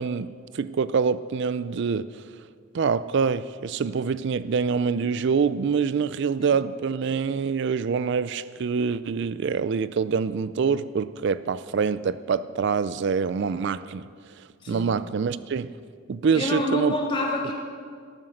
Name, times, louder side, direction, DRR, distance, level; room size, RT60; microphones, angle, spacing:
voice 1, 0.0-2.2 2.7-14.1 14.7-15.8 16.1-17.0, right 5 dB, 55° right, 0.4 m, -25 dB
voice 2, 14.6-14.9 16.3-17.5, left 1 dB, 25° left, 2.6 m, -27 dB
19.0 x 8.9 x 6.4 m
head